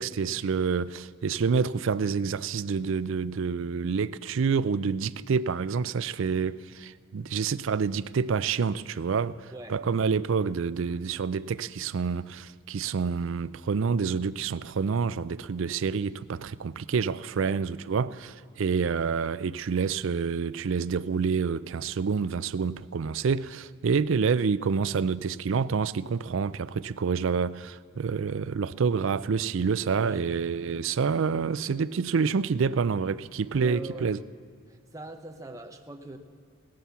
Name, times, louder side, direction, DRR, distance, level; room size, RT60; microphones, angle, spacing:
voice 1, 0.0-34.2, right 5 dB, 65° right, 0.4 m, -28 dB
voice 2, 9.5-9.8 17.4-17.6 30.0-30.3 33.5-34.2 34.7-36.2, right 2 dB, 15° right, 0.8 m, -42 dB
17.5 x 11.5 x 6.9 m
head